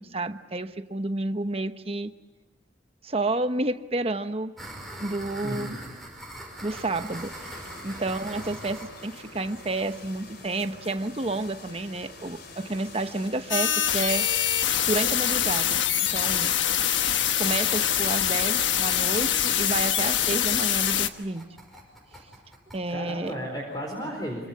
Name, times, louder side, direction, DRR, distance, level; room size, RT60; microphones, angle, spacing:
voice 1, 0.0-2.1 3.0-4.5 5.0-5.8 6.6-14.3 14.9-16.5 17.4-21.5 22.7-23.3, right 2 dB, 30° right, 9 dB, 1.1 m, -30 dB
sound 1, 4.6-12.2 12.6-12.7 12.9-13.0 13.3-13.4 13.7-13.9 14.3-23.3, right 1 dB, ahead, 5.8 m, -44 dB
voice 2, 5.4-5.8 7.8-8.2 22.9-24.5, equal, 20° left, 0 dB, 4.5 m, -34 dB
sound 2, 6.7-20.5, left 3 dB, 60° left, 4.2 m, -46 dB
sound 3, 13.5-21.1, left 10 dB, 80° left, 1.2 m, -24 dB
26.0 x 25.5 x 8.6 m, 1.1 s
head